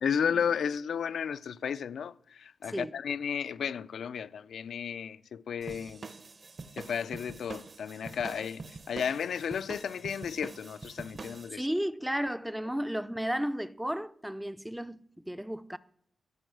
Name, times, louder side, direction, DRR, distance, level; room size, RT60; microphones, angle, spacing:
voice 1, 0.0-6.0 6.8-11.6, left 7 dB, 75° left, 0.4 m, -33 dB
sound 1, 5.6-11.5, right 3 dB, 35° right, 0.7 m, -45 dB
voice 2, 11.5-15.8, equal, 5° right, 0.4 m, -33 dB
13.5 x 5.3 x 7.8 m
wide cardioid pair, 150°, 0 cm